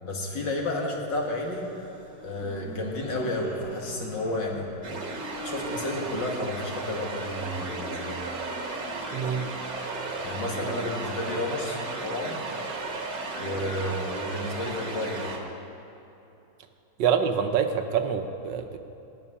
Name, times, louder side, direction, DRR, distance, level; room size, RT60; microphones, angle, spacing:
voice 1, 0.0-1.7 2.2-4.7 5.4-8.2 10.2-12.4 13.3-15.4, left 1 dB, 65° left, -1 dB, 2.6 m, -31 dB
sound 1, 1.1-12.3, right 1 dB, 10° right, 1.8 m, -44 dB
sound 2, 4.8-15.4, right 3 dB, 50° right, 1.9 m, -35 dB
voice 2, 9.1-9.4 17.0-18.8, right 7 dB, 70° right, 7 dB, 1.5 m, -26 dB
18.0 x 6.6 x 9.7 m, 2.9 s
omnidirectional pair, 2.1 m